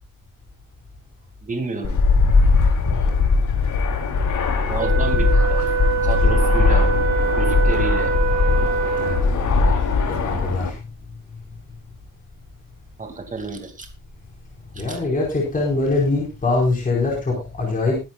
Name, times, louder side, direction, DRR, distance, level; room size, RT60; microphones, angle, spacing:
voice 1, 1.4-2.0 4.7-5.6 6.0-6.9 7.4-8.1 13.0-13.9 14.7-15.0, right 3 dB, 25° right, 5 dB, 2.5 m, -30 dB
Fixed-wing aircraft airplane, 1.8-10.7, left 4 dB, 65° left, 3.4 m, -19 dB
Wind instrument woodwind instrument, 4.8-9.4, right 6 dB, 55° right, 3.3 m, -24 dB
voice 2, 9.0-10.8 14.6-18.0, left 3 dB, 25° left, -2 dB, 4.8 m, -23 dB
21.5 x 11.0 x 2.4 m, 0.27 s
wide cardioid pair, 170°, 33 cm